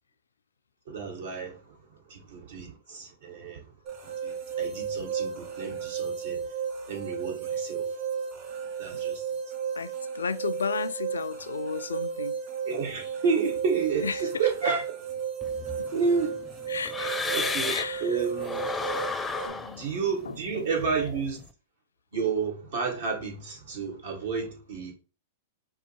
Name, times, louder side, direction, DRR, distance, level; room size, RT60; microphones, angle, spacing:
voice 1, 0.9-3.7 4.0-6.5 6.9-8.0 8.8-9.3 12.7-14.8 15.9-16.4 17.2-18.7 19.8-21.4 22.1-24.9, right 5 dB, 70° right, 1.9 m, -31 dB
sound 1, 3.8-19.5, right 7 dB, 40° right, 2.2 m, -34 dB
voice 2, 9.7-12.4 14.0-14.2 15.8-15.9 16.7-17.3 17.7-18.2 19.4-19.9 20.2-20.7, left 5 dB, 90° left, 0.4 m, -34 dB
sound 2, 15.4-18.0 18.4-21.4, left 4 dB, 10° left, 0.5 m, -34 dB
5.4 x 2.1 x 4.6 m
hypercardioid pair, 115°, 0 cm